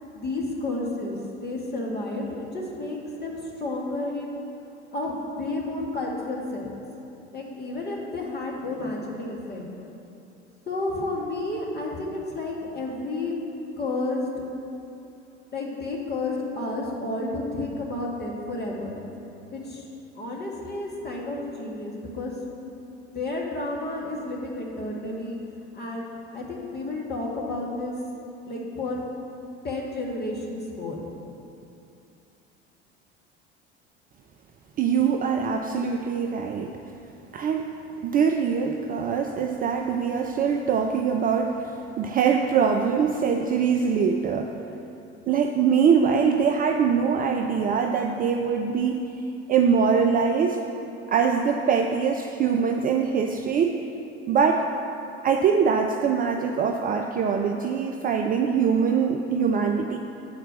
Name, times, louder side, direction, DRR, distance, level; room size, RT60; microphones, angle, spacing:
voice 1, 0.1-4.4 4.9-6.7 7.3-9.6 10.7-13.4 13.8-14.3 15.5-19.0 19.5-19.9 20.2-22.4 23.0-25.4 25.7-28.0 28.5-29.0 29.6-31.1, left 2 dB, 30° left, -2 dB, 1.7 m, -31 dB
voice 2, 34.8-36.7 37.3-37.7 38.0-44.5 45.3-49.0 49.5-50.6 51.1-53.8 54.3-54.7 55.2-60.0, right 6 dB, 25° right, 4 dB, 0.4 m, -23 dB
8.5 x 4.5 x 6.1 m, 2.8 s
figure-of-eight pair, 70°, 34 cm